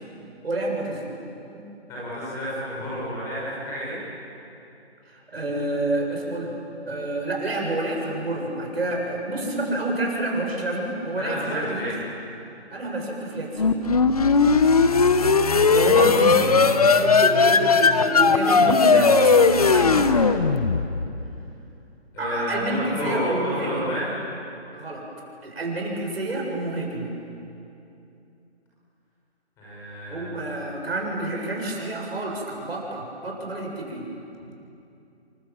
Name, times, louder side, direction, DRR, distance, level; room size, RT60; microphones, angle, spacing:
voice 1, 0.4-1.1 1.5-1.6 5.1-6.5 6.9-12.0 12.7-13.8 15.7-20.3 22.2-23.9 24.7-25.0 25.4-27.1 30.1-34.0, right 2 dB, 65° right, 0 dB, 7.7 m, -28 dB
voice 2, 1.9-4.0 11.1-11.9 15.5-15.9 22.1-24.1 29.6-30.4, equal, 10° left, -8 dB, 5.9 m, -30 dB
sound 1, 13.6-21.2, left 4 dB, 35° left, 0.9 m, -18 dB
30.0 x 24.0 x 7.5 m, 2.7 s
figure-of-eight pair, 165°, 33 cm